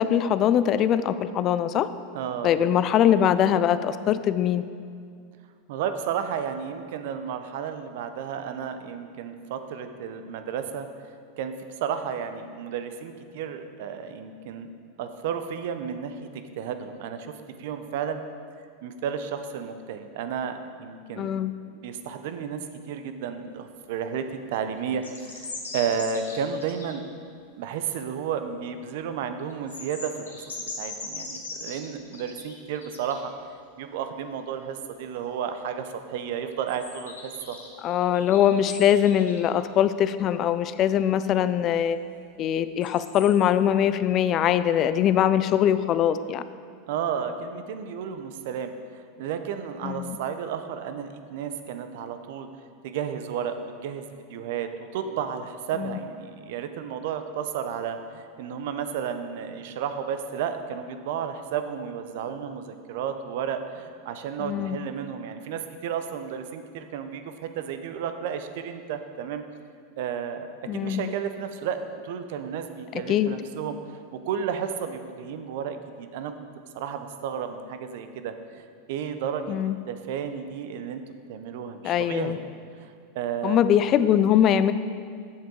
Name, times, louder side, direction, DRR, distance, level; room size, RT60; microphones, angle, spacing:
voice 1, 0.0-1.9 2.4-4.6 21.2-21.5 37.8-42.0 42.4-46.4 49.8-50.2 55.8-55.9 64.4-64.8 70.7-71.0 72.9-73.3 79.5-79.8 81.8-82.4 83.4-84.7, left 10 dB, 45° left, 13 dB, 0.3 m, -22 dB
voice 2, 2.1-2.6 5.7-10.9 11.4-11.5 11.8-14.7 15.0-17.3 17.6-18.2 18.8-21.3 21.7-22.6 22.9-25.5 25.7-27.1 27.6-33.3 33.8-37.6 46.9-52.5 52.8-69.4 70.0-70.5 70.7-73.8 74.1-76.5 76.7-79.6 79.9-81.0 81.3-82.4 82.8-83.6, right 7 dB, 65° right, 8 dB, 0.6 m, -32 dB
sound 1, 24.9-26.9 29.5-33.3 36.7-39.4 42.8-43.3, left 3 dB, 90° left, 1.0 m, -39 dB
7.3 x 7.3 x 3.8 m, 2.2 s
hypercardioid pair, 90°, 0 cm